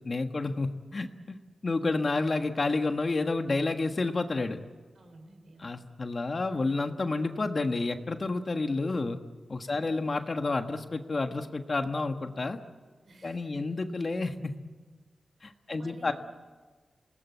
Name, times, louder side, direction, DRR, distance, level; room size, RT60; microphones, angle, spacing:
voice 1, 0.0-1.4 1.6-4.6 5.6-9.2 9.5-12.6 13.2-14.6 15.4-16.1, left 3 dB, 45° left, 6 dB, 1.5 m, -30 dB
voice 2, 5.0-5.8 9.6-9.9 13.1-13.7 15.7-16.1, right 2 dB, 70° right, 5 dB, 5.4 m, -53 dB
27.5 x 19.0 x 8.2 m, 1.4 s
wide cardioid pair, 90°, 0 cm